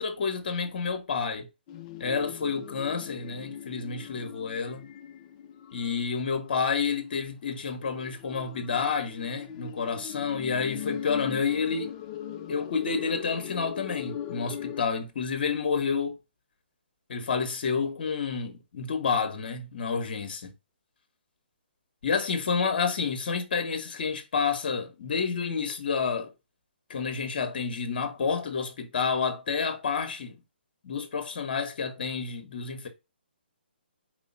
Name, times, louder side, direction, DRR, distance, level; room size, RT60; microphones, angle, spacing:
voice 1, 0.0-1.5 2.0-4.9 5.7-11.9 12.5-16.2 17.1-20.5 22.0-26.3 26.9-30.4 30.8-32.9, left 5 dB, 55° left, 1.2 m, -29 dB
sound 1, 1.7-6.9 7.7-14.8, left 9 dB, 30° left, 0.5 m, -40 dB
4.7 x 2.7 x 4.1 m
figure-of-eight pair, 140°, 6 cm